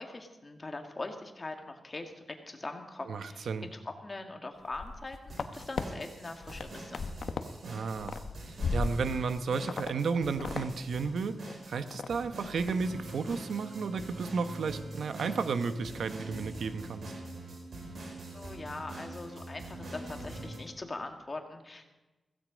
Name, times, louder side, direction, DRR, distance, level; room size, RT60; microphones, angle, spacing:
voice 1, 0.0-7.0 18.3-21.9, left 2 dB, 30° left, 4 dB, 2.0 m, -42 dB
voice 2, 3.0-3.7 7.6-17.1, right 5 dB, 80° right, 10 dB, 1.0 m, -33 dB
sound 1, 4.6-5.8 6.3-7.5 7.8-9.3 9.7-9.9 10.2-10.7 10.9-11.0 11.5-12.1 12.4-12.8 13.1-13.4, left 4 dB, 65° left, 1.0 m, -36 dB
sound 2, 5.3-20.6, right 1 dB, 60° right, 4.1 m, -44 dB
16.0 x 15.5 x 5.2 m, 1.1 s
wide cardioid pair, 115°, 0 cm